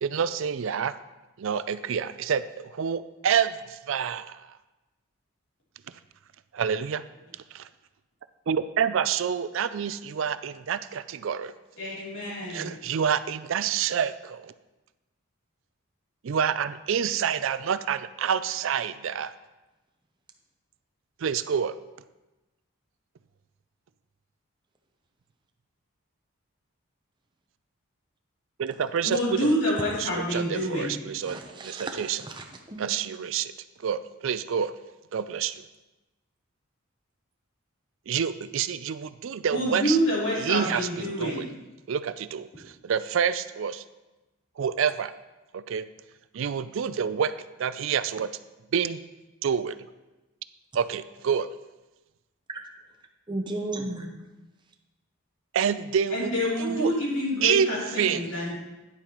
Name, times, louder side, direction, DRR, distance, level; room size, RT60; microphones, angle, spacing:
voice 1, 0.0-0.9 1.4-4.5 6.5-7.0 7.5-7.7 8.5-11.5 12.5-14.5 16.2-19.3 21.2-21.8 28.6-29.6 30.0-32.2 32.8-33.5 33.8-34.8 35.1-35.6 38.1-40.0 40.4-41.5 41.9-43.8 44.6-45.1 45.5-45.9 46.3-47.3 47.6-48.3 48.7-49.0 49.4-49.8 50.7-51.5 55.5-56.3 56.6-56.9 57.4-58.4, right 7 dB, 65° right, 14 dB, 0.4 m, -28 dB
voice 2, 11.8-12.7 29.0-31.0 39.5-41.5 56.1-58.6, equal, 60° left, -6 dB, 3.2 m, -27 dB
voice 3, 31.2-32.9 53.3-54.2, right 2 dB, 20° right, 3 dB, 0.7 m, -35 dB
9.8 x 8.7 x 3.0 m, 1.1 s
head